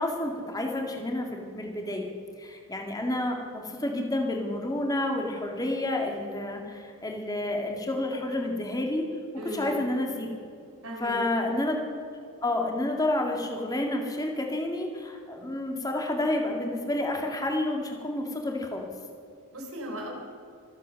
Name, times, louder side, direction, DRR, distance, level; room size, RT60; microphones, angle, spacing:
voice 1, 0.0-2.1 2.4-9.0 9.5-10.3 11.0-11.8 12.4-18.8, left 1 dB, 15° left, 2 dB, 2.1 m, -29 dB
voice 2, 9.4-9.9 10.8-11.5 19.5-20.1, equal, 70° right, 0 dB, 4.2 m, -37 dB
25.0 x 8.4 x 6.5 m, 2.4 s
head